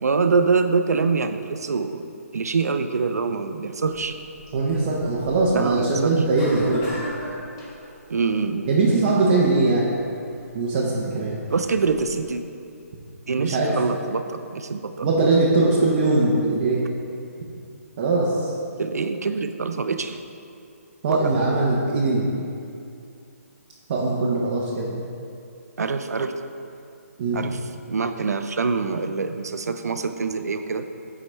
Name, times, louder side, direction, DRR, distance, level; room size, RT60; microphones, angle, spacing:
voice 1, 0.0-2.1 2.3-4.1 5.5-6.1 8.1-8.7 11.5-12.4 13.3-15.1 18.8-20.2 21.1-21.2 25.8-26.4 27.3-27.6 27.9-30.8, right 4 dB, 80° right, 8 dB, 0.6 m, -24 dB
sound 1, 3.9-12.3, left 1 dB, 20° left, 1.4 m, -40 dB
voice 2, 4.5-6.9 8.7-9.9 10.5-11.4 13.4-13.8 15.0-16.9 18.0-18.5 21.0-22.3 23.9-25.0 27.2-27.4, right 3 dB, 25° right, -5 dB, 0.7 m, -21 dB
12.5 x 4.8 x 3.3 m, 2.6 s
hypercardioid pair, 170°, 8 cm